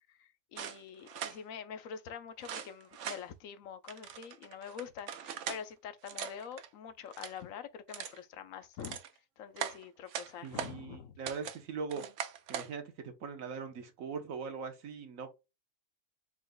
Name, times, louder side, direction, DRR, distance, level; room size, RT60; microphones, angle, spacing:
voice 1, 0.1-9.0 9.4-11.2, left 7 dB, 80° left, 1.0 m, -46 dB
sound 1, 0.6-1.4 2.4-3.2 3.9-5.6 6.0-6.7 7.0-7.4 7.9-8.2 8.6-9.1 9.6-10.7 11.2-11.6 11.9-12.7, right 8 dB, 65° right, 0.9 m, -41 dB
voice 2, 10.4-12.0 12.5-15.3, right 5 dB, 80° right, 1.3 m, -41 dB
4.6 x 2.2 x 3.7 m
omnidirectional pair, 1.4 m